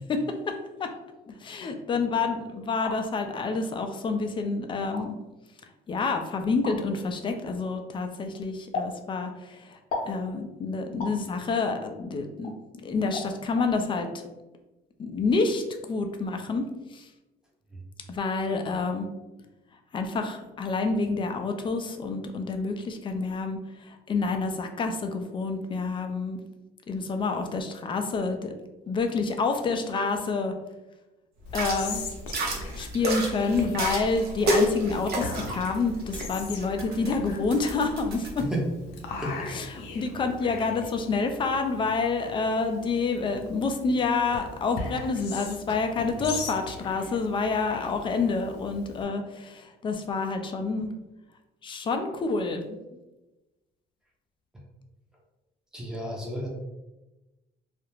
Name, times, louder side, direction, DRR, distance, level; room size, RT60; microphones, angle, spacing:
voice 1, 0.1-0.5 0.8-0.9 1.2-5.2 5.9-9.8 10.1-12.5 12.8-14.1 15.0-16.6 16.9-17.1 18.1-19.1 19.9-26.4 26.9-28.5 28.9-30.5 31.5-32.0 32.7-38.4 39.5-50.9 51.6-52.8, left 4 dB, 30° left, 6 dB, 0.4 m, -28 dB
sound 1, 2.6-3.0 3.9-4.0 4.8-5.0 6.6-6.8 8.7-8.9 9.9-10.2 11.0-11.2 12.4-12.6 13.1-13.3 13.6-13.7, left 3 dB, 50° left, 0.7 m, -33 dB
sound 2, 31.4-38.4, equal, 70° right, 0.7 m, -31 dB
Whispering, 31.5-49.0, left 3 dB, 90° left, 0.5 m, -41 dB
voice 2, 39.2-39.5 46.2-46.3 55.7-56.5, right 1 dB, 5° right, -3 dB, 0.7 m, -32 dB
2.4 x 2.0 x 3.0 m, 1.0 s
cardioid pair, 110°, 17 cm